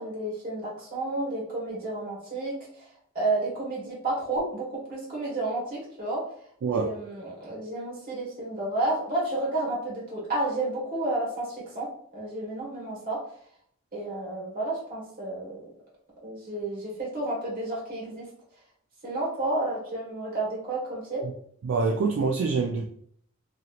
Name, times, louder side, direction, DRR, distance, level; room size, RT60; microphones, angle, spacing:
voice 1, 0.0-2.9 3.1-6.2 6.7-13.2 13.9-15.7 16.2-18.3 19.0-21.2, right 2 dB, 45° right, -5 dB, 1.4 m, -31 dB
voice 2, 21.6-22.9, right 4 dB, 70° right, 0 dB, 0.3 m, -25 dB
2.9 x 2.8 x 2.4 m, 0.64 s
head